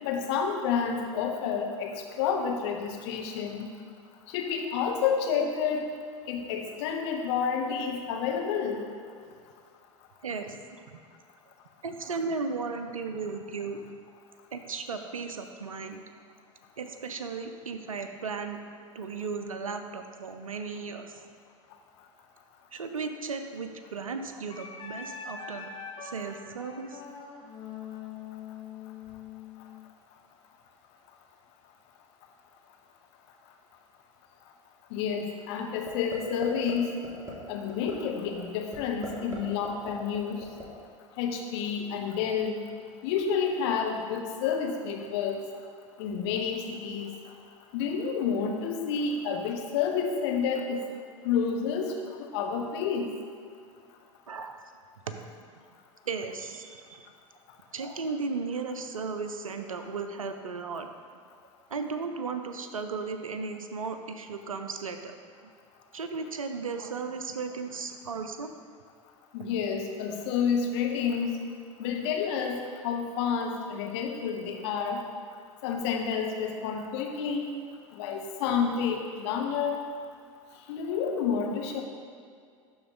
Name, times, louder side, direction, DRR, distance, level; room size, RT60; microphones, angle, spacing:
voice 1, 0.0-3.7 4.3-5.9 6.3-8.8 34.9-36.9 37.5-40.5 41.2-42.7 43.0-45.4 46.0-47.1 47.7-50.8 51.2-51.9 52.2-53.1 69.3-71.4 71.8-75.0 75.6-77.5 77.9-79.8 80.7-81.8, left 6 dB, 55° left, 2 dB, 0.9 m, -29 dB
voice 2, 10.2-11.0 11.8-13.8 14.5-16.0 16.8-18.6 18.9-21.2 22.7-25.7 26.0-27.0 54.3-54.6 55.1-55.2 55.6-55.7 56.1-57.1 57.7-60.9 61.7-65.1 65.9-68.5, right 4 dB, 80° right, 7 dB, 0.5 m, -35 dB
Wind instrument woodwind instrument, 24.5-29.9, left 6 dB, 25° left, 1.2 m, -43 dB
sound 1, 35.9-36.2 36.4-36.7 37.0-37.3 37.7-37.9 38.3-38.4 38.7-39.4 39.6-40.6, equal, 15° right, 1.7 m, -39 dB
11.5 x 3.9 x 3.9 m, 2.3 s
figure-of-eight pair, 75°, 17 cm